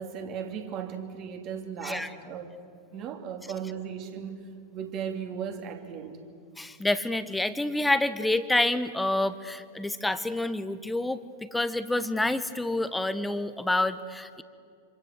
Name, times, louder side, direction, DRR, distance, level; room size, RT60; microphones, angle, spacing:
voice 1, 0.0-2.6 2.9-6.2, right 7 dB, 35° right, 5 dB, 3.0 m, -37 dB
voice 2, 6.6-14.4, left 2 dB, 5° left, 12 dB, 1.2 m, -28 dB
27.0 x 26.0 x 7.8 m, 2.4 s
figure-of-eight pair, 90°, 0 cm